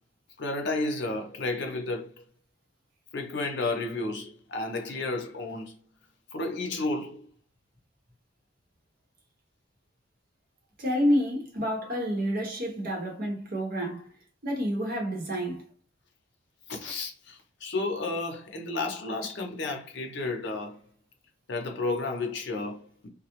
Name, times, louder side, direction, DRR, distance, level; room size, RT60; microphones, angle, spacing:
voice 1, 0.4-2.1 3.1-5.8 6.3-7.3 16.7-20.8 21.5-23.1, left 2 dB, 60° left, 0.6 m, -32 dB
voice 2, 10.8-14.1 14.4-15.6, equal, 50° right, 0.8 m, -28 dB
2.2 x 2.0 x 2.9 m
head